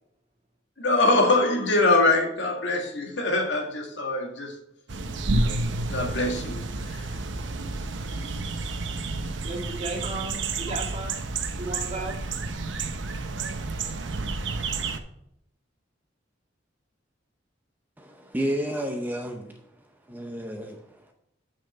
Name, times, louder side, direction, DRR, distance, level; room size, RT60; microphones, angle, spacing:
voice 1, 0.8-4.5 5.3-5.6 5.9-7.1, left 2 dB, 70° left, 1 dB, 1.9 m, -24 dB
sound 1, 4.9-15.0, right 3 dB, 80° right, 0.9 m, -30 dB
voice 2, 9.4-11.2 11.5-12.2, right 2 dB, 35° right, 1 dB, 1.7 m, -34 dB
voice 3, 18.0-19.6 20.1-21.1, equal, 10° right, 3 dB, 0.7 m, -31 dB
7.5 x 6.5 x 4.3 m, 0.76 s
head